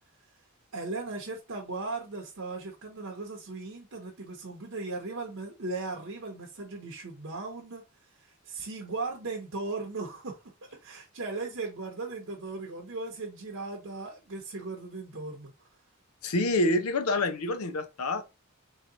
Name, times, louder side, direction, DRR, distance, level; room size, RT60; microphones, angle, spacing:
voice 1, 0.7-7.8 8.4-10.4 10.8-15.5, right 3 dB, 65° right, 0.8 m, -37 dB
voice 2, 16.2-18.2, left 2 dB, 85° left, 0.6 m, -27 dB
3.1 x 2.9 x 3.8 m
head